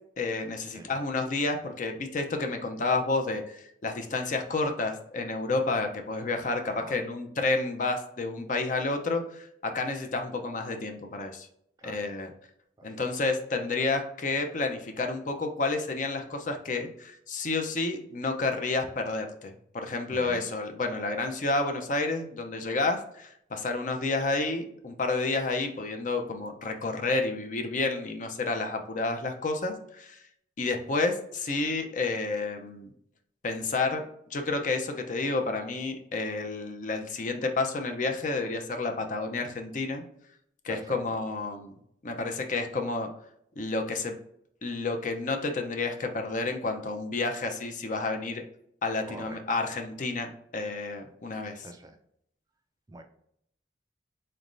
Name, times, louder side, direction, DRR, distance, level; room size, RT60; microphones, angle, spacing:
voice 1, 0.2-11.5 11.8-12.3 12.8-30.2 30.6-32.9 33.4-34.0 34.3-40.0 40.6-41.8 42.0-43.1 43.6-44.2 44.6-48.4 48.8-50.3 50.5-51.7, left 3 dB, 45° left, 5 dB, 0.6 m, -30 dB
voice 2, 11.8-12.1 12.8-13.3 20.1-20.4 40.7-41.3 49.1-49.4 51.6-52.0 52.9-53.0, right 2 dB, 20° right, 5 dB, 0.3 m, -45 dB
4.0 x 3.3 x 2.5 m, 0.71 s
head